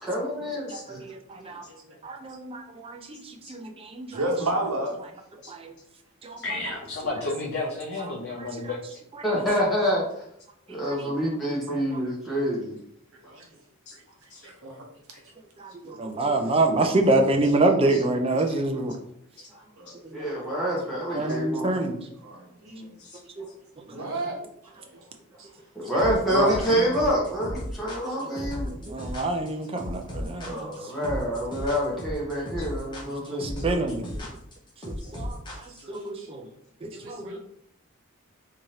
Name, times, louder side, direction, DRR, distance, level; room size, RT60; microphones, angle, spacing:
voice 1, 0.0-1.0 9.2-10.2 10.7-12.8 20.1-21.7 25.7-28.7 30.4-33.9, equal, ahead, -7 dB, 1.2 m, -27 dB
voice 2, 0.7-1.6 2.0-4.2 5.5-5.7 6.2-6.4 8.6-8.7 15.6-19.0 20.0-20.2 21.1-22.0 23.4-23.5 24.0-24.4 28.7-30.8 33.1-34.0 34.8-36.5 36.8-37.4, right 2 dB, 25° right, 4 dB, 0.4 m, -27 dB
voice 3, 1.5-2.4 7.6-7.7 12.0-12.1 13.2-13.5 13.9-14.0 14.4-14.9 25.4-25.5 28.1-28.2 35.0-35.1 35.5-35.6 35.8-36.3 36.9-37.4, right 2 dB, 60° right, 0 dB, 0.9 m, -50 dB
voice 4, 4.1-4.9 11.7-11.8 17.2-17.3 19.8-19.9 21.2-21.3 22.2-22.9 23.8-24.4 24.9-25.0 26.3-26.9, right 1 dB, 85° right, 1 dB, 0.9 m, -29 dB
voice 5, 6.4-8.8 13.9-14.0 14.3-14.5 17.9-18.0 18.5-18.6 23.0-23.2 33.6-33.7 35.0-35.1, left 3 dB, 50° left, -3 dB, 0.5 m, -33 dB
sound 1, 26.0-36.0, left 1 dB, 20° left, 0.8 m, -35 dB
3.6 x 2.8 x 3.2 m, 0.72 s
head